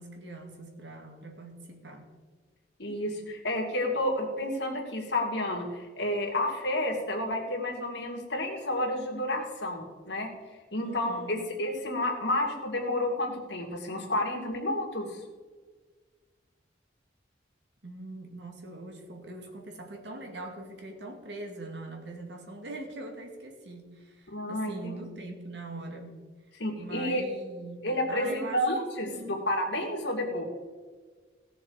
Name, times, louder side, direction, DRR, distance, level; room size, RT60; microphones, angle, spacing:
voice 1, 0.0-2.1 10.8-11.5 17.8-26.2 26.8-28.7 29.0-29.4, right 2 dB, 75° right, 2 dB, 2.2 m, -42 dB
voice 2, 2.8-5.7 6.0-10.3 10.7-15.2 24.3-25.0 26.6-27.2 27.8-29.1 29.5-30.4, left 1 dB, 75° left, 1 dB, 2.5 m, -30 dB
17.5 x 6.8 x 4.9 m, 1.4 s
head